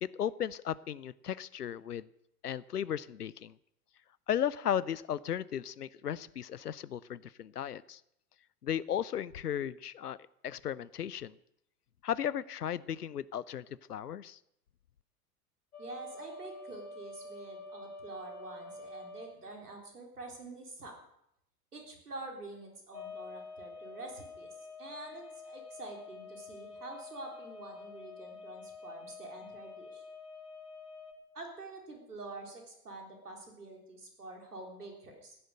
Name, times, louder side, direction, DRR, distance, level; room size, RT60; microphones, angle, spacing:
voice 1, 0.0-2.1 2.4-3.5 4.3-8.0 8.6-10.2 10.4-11.3 12.0-14.4, left 9 dB, 80° left, 21 dB, 0.6 m, -35 dB
sound 1, 15.7-19.3 22.9-31.1, left 3 dB, 65° left, 3.0 m, -48 dB
voice 2, 15.8-20.9 21.7-24.5 24.8-30.0 31.3-35.4, right 2 dB, 75° right, 1 dB, 4.0 m, -47 dB
16.0 x 10.0 x 6.5 m, 0.77 s
figure-of-eight pair, 90°, 46 cm